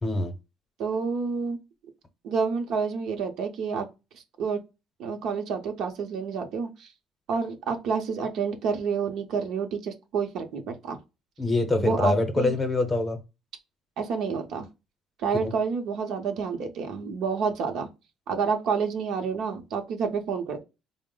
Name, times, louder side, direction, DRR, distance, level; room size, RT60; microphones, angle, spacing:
voice 1, 0.0-0.3 11.4-13.2 15.4-15.5, left 2 dB, 20° left, 0.8 m, -24 dB
voice 2, 0.8-1.6 2.2-3.9 4.4-4.6 5.0-6.9 7.3-11.0 11.8-12.5 14.0-14.7 15.2-17.9 18.3-20.6, right 5 dB, 70° right, 0.7 m, -29 dB
4.2 x 2.0 x 3.7 m
cardioid pair, 120°, 0 cm